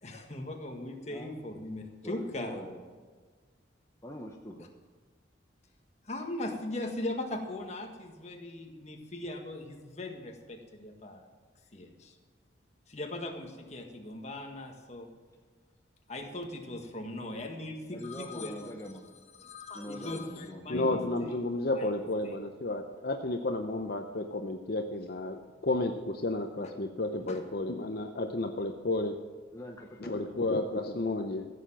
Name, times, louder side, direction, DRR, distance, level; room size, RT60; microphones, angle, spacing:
voice 1, 0.0-2.6 6.1-11.2 11.7-12.1 12.9-15.1 16.1-18.9 19.4-21.0 21.7-21.9 22.2-22.3 27.3-27.4, left 1 dB, 35° left, 3 dB, 1.7 m, -39 dB
voice 2, 1.1-1.4 2.0-2.8 4.0-4.7 16.7-16.9 17.9-19.1 19.7-20.7 27.3-27.4 29.5-30.5, equal, 15° left, 1 dB, 0.8 m, -44 dB
voice 3, 20.7-29.2 30.0-31.5, left 2 dB, 55° left, 5 dB, 0.7 m, -32 dB
15.5 x 7.0 x 7.4 m, 1.5 s
head